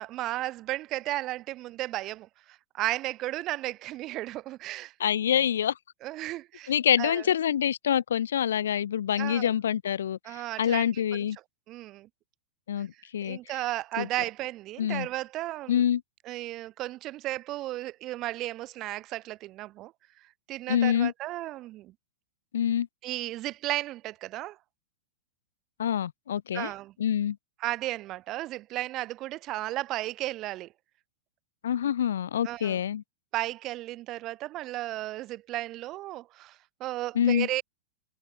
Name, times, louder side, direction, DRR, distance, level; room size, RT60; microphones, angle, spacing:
voice 1, 0.0-4.9 6.0-6.7 7.0-7.3 9.1-9.5 10.2-11.3 11.7-12.1 13.2-15.8 16.2-19.9 20.5-21.9 23.0-24.6 26.5-26.9 27.6-30.7 32.4-32.8 33.3-37.6, right 16 dB, 30° right, 1.3 m, -34 dB
voice 2, 5.0-5.7 6.7-11.4 12.7-13.4 14.0-14.1 14.8-15.1 15.7-16.0 20.7-21.1 22.5-22.9 25.8-26.7 27.0-27.4 31.6-33.0 37.2-37.5, left 9 dB, 90° left, 0.8 m, -26 dB
supercardioid pair, 160°, 0 cm